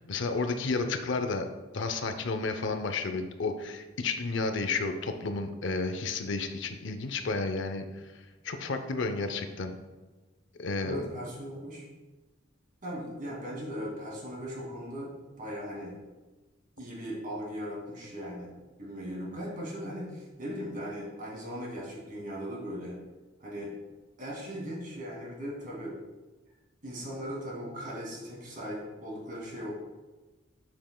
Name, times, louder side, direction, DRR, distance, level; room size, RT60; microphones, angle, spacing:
voice 1, 0.0-1.5 1.7-8.0 8.4-9.7 10.6-11.1, left 3 dB, 65° left, 8 dB, 0.6 m, -31 dB
voice 2, 10.8-11.9 12.8-15.1 15.4-15.9 16.8-18.5 18.8-23.0 23.4-23.7 24.2-26.0 26.8-29.7, equal, 45° right, -3 dB, 2.3 m, -38 dB
7.6 x 7.4 x 2.2 m, 1.2 s
head